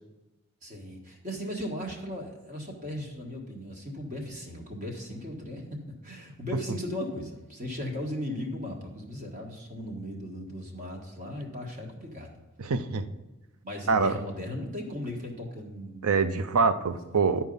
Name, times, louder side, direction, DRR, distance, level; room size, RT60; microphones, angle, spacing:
voice 1, 0.6-12.4 13.6-16.4 16.9-17.3, left 1 dB, 35° right, 0 dB, 1.6 m, -37 dB
voice 2, 12.6-13.1 13.9-14.1 16.0-17.4, right 4 dB, 90° right, 11 dB, 0.6 m, -25 dB
10.5 x 4.6 x 5.4 m, 1.0 s
head